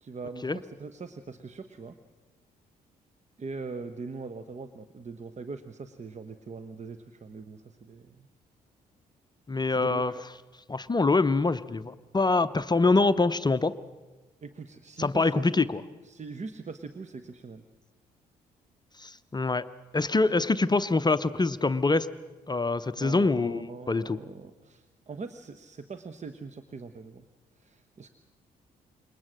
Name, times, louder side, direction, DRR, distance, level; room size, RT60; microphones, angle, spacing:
voice 1, 0.0-1.9 3.4-8.3 9.7-10.2 14.4-15.7 16.0-17.6 22.9-27.3 27.6-28.1, right 4 dB, 35° right, 10 dB, 1.2 m, -41 dB
voice 2, 9.5-10.1 10.7-13.8 15.0-15.8 19.0-19.7 19.9-22.1 22.5-24.2, left 3 dB, 20° left, 13 dB, 0.8 m, -25 dB
27.0 x 22.5 x 6.4 m, 1.2 s
figure-of-eight pair, 40°, 21 cm